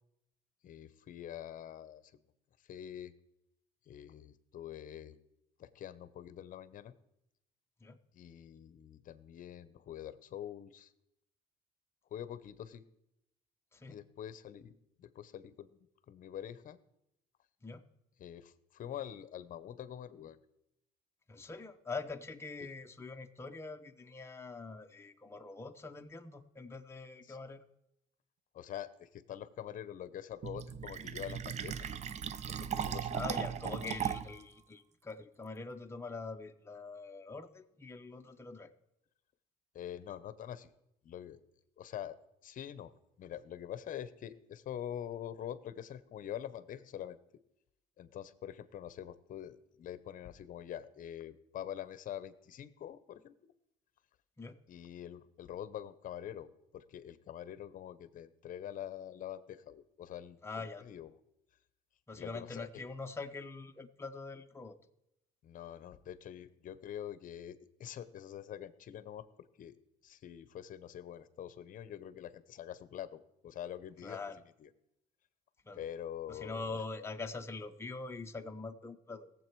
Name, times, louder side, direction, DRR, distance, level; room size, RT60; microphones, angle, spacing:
voice 1, 0.6-2.2 2.6-3.1 3.9-5.2 5.6-6.9 8.1-10.9 12.1-12.9 13.9-15.8 16.1-16.8 18.2-20.4 22.6-22.7 27.3-27.4 28.5-31.9 32.5-33.9 39.7-40.7 41.0-41.4 41.8-42.2 42.4-42.9 43.2-47.2 48.0-53.5 54.7-61.1 62.2-62.7 65.4-69.8 70.0-74.2 74.6-74.7 75.7-76.8, left 10 dB, 50° left, 16 dB, 0.8 m, -45 dB
voice 2, 21.3-27.6 33.1-38.7 54.4-54.6 60.4-60.9 62.1-64.8 74.0-74.4 75.6-75.8 76.3-79.3, left 3 dB, 15° left, 5 dB, 0.8 m, -44 dB
Fill (with liquid), 30.4-34.4, right 8 dB, 40° right, 0.6 m, -37 dB
18.0 x 7.6 x 4.6 m, 0.83 s
cardioid pair, 110°, 17 cm